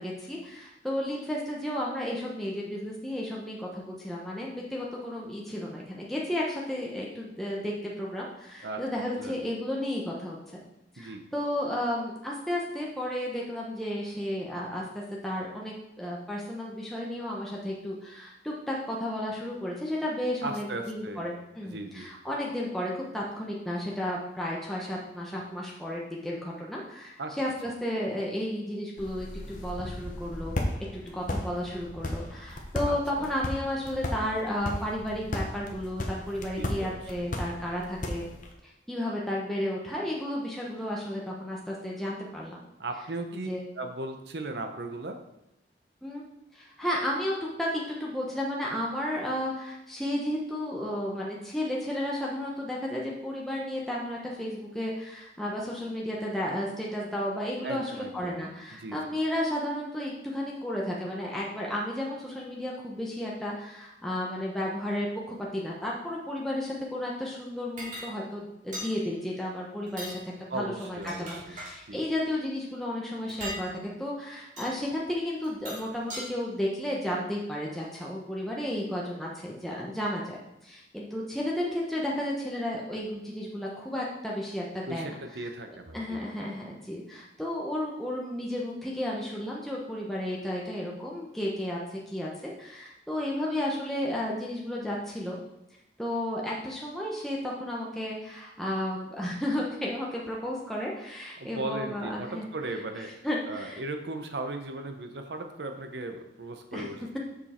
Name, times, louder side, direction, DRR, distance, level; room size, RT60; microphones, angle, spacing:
voice 1, 0.0-10.6 10.9-14.8 15.2-30.5 30.9-38.3 38.9-42.6 43.5-43.6 46.0-46.2 46.5-73.7 74.0-80.4 80.6-85.2 85.9-95.4 96.0-102.4 103.2-103.8 106.7-106.9, left 1 dB, ahead, -4 dB, 1.0 m, -33 dB
voice 2, 20.4-21.3 21.6-22.1 27.2-27.4 32.9-33.3 36.6-37.3 42.8-43.5 43.7-45.2 57.6-58.4 58.7-59.0 70.5-71.6 71.9-72.0 84.9-86.2 101.4-107.1, right 2 dB, 65° right, 6 dB, 0.9 m, -37 dB
sound 1, 29.0-38.5, left 1 dB, 45° left, 1.0 m, -35 dB
sound 2, 67.8-68.1 68.7-68.9 69.9-70.2 70.9-71.8 73.3-73.6 74.6-74.7 75.4-76.3, equal, 45° right, 2.4 m, -39 dB
7.0 x 5.3 x 4.4 m, 0.88 s
head